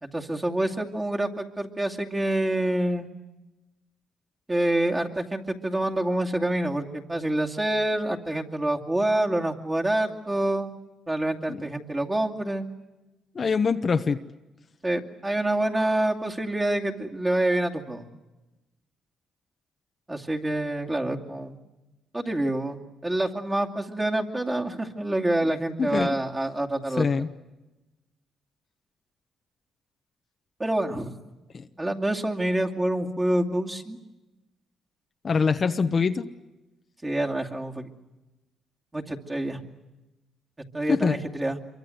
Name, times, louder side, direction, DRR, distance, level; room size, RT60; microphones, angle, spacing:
voice 1, 0.0-3.1 4.5-10.7 11.1-12.7 14.8-18.1 20.1-21.6 22.1-27.1 30.6-31.1 31.8-34.0 37.0-37.9 38.9-39.6 40.7-41.6, right 1 dB, 20° right, 1 dB, 2.5 m, -27 dB
voice 2, 13.3-14.2 25.0-25.1 25.8-26.2 27.0-27.3 31.5-31.7 35.2-36.3 40.9-41.2, left 5 dB, 40° left, 8 dB, 1.0 m, -24 dB
26.5 x 24.0 x 7.9 m, 1.0 s
cardioid pair, 90°, 0 cm